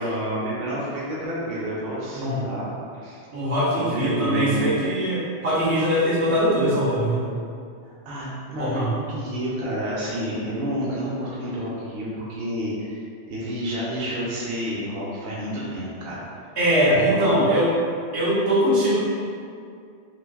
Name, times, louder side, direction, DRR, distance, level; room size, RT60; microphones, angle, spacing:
voice 1, 0.0-3.2 3.7-4.6 7.8-16.2 16.9-17.4, equal, 65° right, -7 dB, 0.8 m, -30 dB
voice 2, 3.3-7.2 8.6-8.9 16.6-17.7 18.1-19.0, equal, 85° right, -8 dB, 1.1 m, -21 dB
3.1 x 2.7 x 2.3 m, 2.3 s
omnidirectional pair, 1.1 m